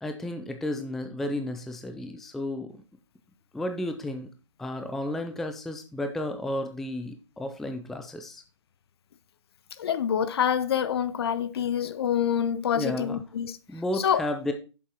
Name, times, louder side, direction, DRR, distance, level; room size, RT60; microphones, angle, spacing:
voice 1, 0.0-2.8 3.5-4.3 4.6-8.4 12.7-13.2 13.7-14.5, left 1 dB, ahead, 0.4 m, -32 dB
voice 2, 9.8-13.6 14.0-14.2, left 8 dB, 50° left, 0.7 m, -26 dB
8.7 x 7.1 x 2.9 m
figure-of-eight pair, 135°, 16 cm